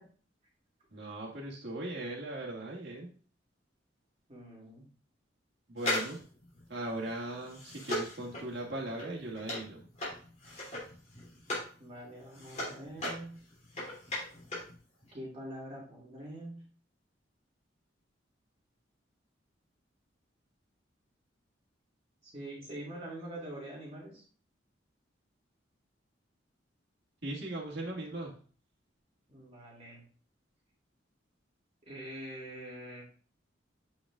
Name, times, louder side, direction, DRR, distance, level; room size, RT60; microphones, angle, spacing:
voice 1, 0.9-3.1 5.7-6.2 6.7-9.8 27.2-28.4, right 1 dB, 65° right, -2 dB, 2.0 m, -39 dB
voice 2, 4.3-4.8 11.3-11.4 11.8-13.4 15.1-16.6 22.2-24.2 29.3-30.0 31.8-33.0, right 1 dB, 35° right, -4 dB, 2.7 m, -44 dB
sound 1, 5.8-11.7 12.1-14.8 15.0-15.1, left 1 dB, 40° left, 3.0 m, -38 dB
7.6 x 5.2 x 2.5 m, 0.42 s
head